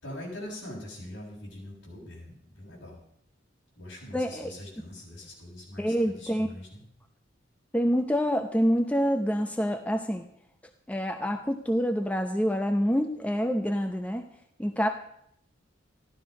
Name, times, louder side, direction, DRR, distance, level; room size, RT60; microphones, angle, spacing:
voice 1, 0.0-3.0 3.7-6.8, left 1 dB, 60° left, -3 dB, 6.7 m, -43 dB
voice 2, 4.1-4.5 5.8-6.5 7.7-10.2 10.9-14.3 14.6-14.9, equal, 5° left, 5 dB, 0.6 m, -26 dB
14.0 x 12.0 x 5.3 m, 0.72 s
head